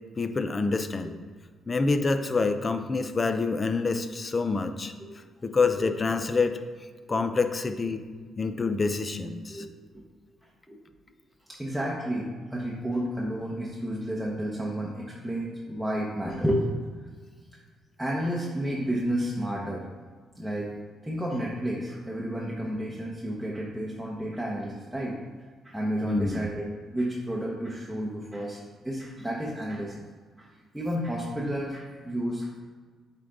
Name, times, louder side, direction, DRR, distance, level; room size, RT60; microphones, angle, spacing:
voice 1, 0.2-1.1 1.7-4.9 5.4-6.6 7.1-8.1 8.4-9.7 26.0-26.5, left 4 dB, 30° left, 8 dB, 0.5 m, -27 dB
voice 2, 9.5-10.1 10.7-10.8 11.5-16.7 18.0-19.9 20.4-20.7 21.0-25.2 25.6-28.6 28.8-30.1 30.4-32.6, equal, ahead, -4 dB, 1.0 m, -31 dB
8.3 x 3.8 x 3.8 m, 1.5 s
cardioid pair, 90°, 0 cm